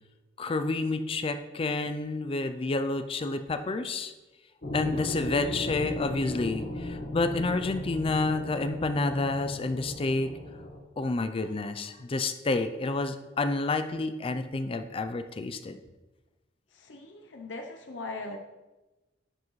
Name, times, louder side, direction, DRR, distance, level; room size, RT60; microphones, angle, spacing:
voice 1, 0.4-4.1 4.7-10.3 11.0-15.8, left 3 dB, 30° left, 9 dB, 0.4 m, -29 dB
sound 1, 4.6-10.8, left 1 dB, 55° left, 1.3 m, -36 dB
voice 2, 16.7-18.4, left 2 dB, 75° left, 3 dB, 0.7 m, -40 dB
11.0 x 7.3 x 3.1 m, 1.1 s
head